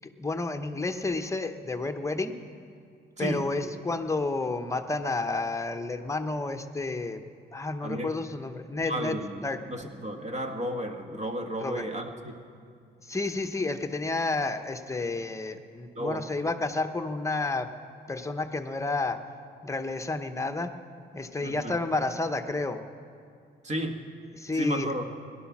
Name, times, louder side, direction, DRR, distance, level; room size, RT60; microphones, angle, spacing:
voice 1, 0.2-2.4 3.2-9.2 9.4-9.6 11.6-11.9 13.0-17.7 18.1-19.2 19.6-20.8 21.1-22.8 24.3-24.9, left 3 dB, 15° left, 7 dB, 0.9 m, -30 dB
voice 2, 3.2-3.5 7.8-8.2 8.9-12.4 16.0-16.2 21.4-21.8 23.6-24.0 24.5-25.1, equal, 35° right, 4 dB, 1.6 m, -33 dB
18.0 x 11.5 x 6.0 m, 2.3 s
cardioid pair, 90°, 20 cm